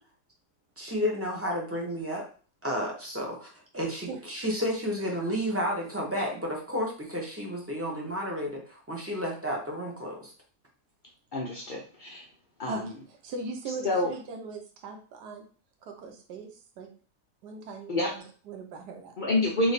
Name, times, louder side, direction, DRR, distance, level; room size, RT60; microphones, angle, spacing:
voice 1, 0.8-2.2 2.6-10.3, equal, 20° right, -2 dB, 0.4 m, -31 dB
voice 2, 11.3-12.2 12.6-12.8 13.8-14.1 17.9-18.1 19.2-19.7, left 1 dB, 75° left, -1 dB, 0.4 m, -27 dB
voice 3, 12.7-15.4 15.8-16.9 17.4-19.1, right 3 dB, 85° right, 3 dB, 1.4 m, -40 dB
3.3 x 2.7 x 4.0 m, 0.40 s
omnidirectional pair, 1.7 m